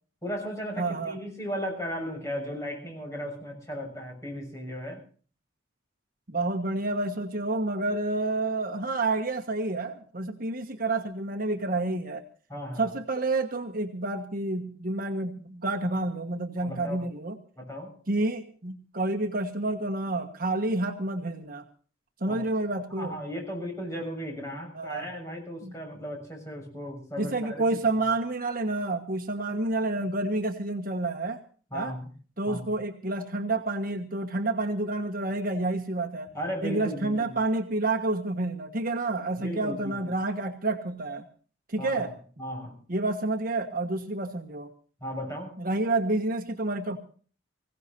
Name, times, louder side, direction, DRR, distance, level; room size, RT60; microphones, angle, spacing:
voice 1, 0.2-5.0 12.5-12.9 16.6-17.0 17.6-17.9 22.2-22.4 23.0-27.6 31.7-32.1 32.4-32.8 36.3-37.3 39.3-40.1 41.8-42.1 42.4-42.8 45.0-45.6, equal, 15° left, 1 dB, 6.8 m, -36 dB
voice 2, 0.8-1.2 6.3-12.2 12.8-17.4 18.1-21.6 22.2-23.1 24.7-25.1 25.6-25.7 27.2-31.4 31.7-31.9 32.4-36.3 36.6-41.2 41.7-42.1 42.9-44.7 45.6-47.0, right 2 dB, 50° right, 4 dB, 1.4 m, -29 dB
25.5 x 16.5 x 2.7 m, 0.41 s
head